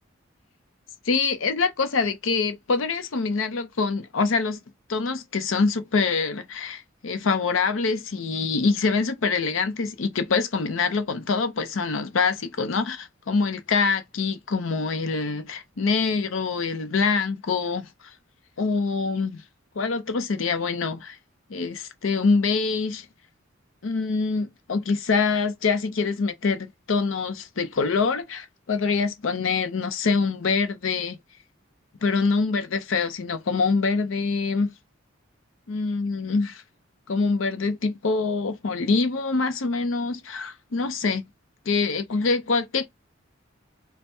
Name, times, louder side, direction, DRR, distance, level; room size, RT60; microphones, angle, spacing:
voice 1, 1.1-4.6 4.9-17.9 18.6-19.4 19.8-21.2 21.5-23.1 23.8-31.2 32.0-34.7 35.7-36.6 37.1-41.2 41.7-42.9, left 4 dB, 80° left, 0.6 m, -25 dB
3.3 x 2.1 x 4.2 m
head